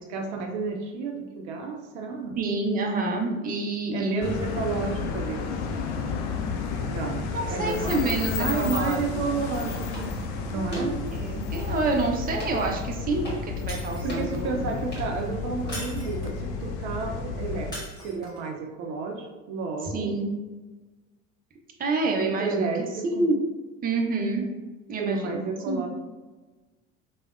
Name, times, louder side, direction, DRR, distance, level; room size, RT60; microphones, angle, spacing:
voice 1, 0.1-2.4 3.9-5.5 6.9-8.1 8.4-10.2 10.5-11.0 14.0-17.7 18.0-20.2 22.1-23.3 25.0-25.9, right 4 dB, 70° right, 3 dB, 0.5 m, -31 dB
voice 2, 2.4-4.6 7.3-9.3 10.5-14.6 19.9-20.3 21.8-22.7 23.0-23.4 23.8-24.5 24.9-25.4 25.7-25.9, right 2 dB, 25° right, 0 dB, 0.6 m, -28 dB
sound 1, 4.2-17.7, left 5 dB, 65° left, 0.5 m, -32 dB
sound 2, 9.4-15.9, equal, 25° left, 1.5 m, -45 dB
Shatter, 13.7-14.4 15.7-16.5 17.7-18.5, equal, 10° left, 1.3 m, -40 dB
3.3 x 2.2 x 2.4 m, 1.2 s
hypercardioid pair, 70°, 38 cm